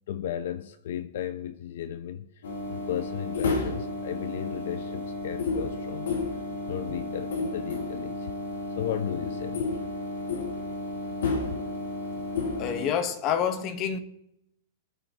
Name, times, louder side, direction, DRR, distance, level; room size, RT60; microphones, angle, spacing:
voice 1, 0.1-6.2 6.7-8.3 8.8-9.8, left 10 dB, 65° left, 0.7 m, -35 dB
sound 1, 2.4-12.9, left 3 dB, 85° left, 3.3 m, -32 dB
voice 2, 12.6-14.0, left 8 dB, 30° left, 1.2 m, -27 dB
24.0 x 8.8 x 3.0 m
supercardioid pair, 160°, 0 cm